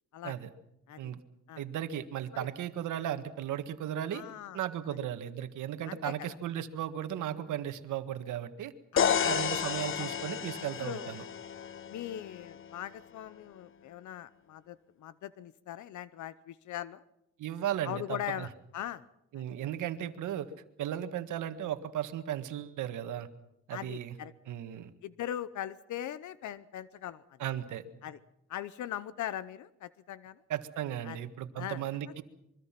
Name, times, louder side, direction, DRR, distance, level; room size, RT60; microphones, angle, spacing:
voice 1, 1.6-4.2 4.5-8.7 9.2-11.2 17.4-18.5 19.3-20.5 20.8-23.3 23.7-24.2 24.5-24.9 27.4-27.8 30.5-32.2, right 11 dB, 80° right, 9 dB, 1.7 m, -36 dB
voice 2, 4.1-4.6 5.9-6.1 8.9-9.2 10.8-11.1 11.9-17.0 17.8-19.0 19.4-19.5 23.7-24.3 25.0-27.2 28.0-28.2 28.5-30.4 31.0-31.2 31.6-31.8, left 11 dB, 75° left, 16 dB, 0.9 m, -40 dB
sound 1, 9.0-12.8, left 8 dB, 45° left, 1.0 m, -32 dB
24.5 x 23.5 x 5.9 m, 0.82 s
cardioid pair, 90°, 30 cm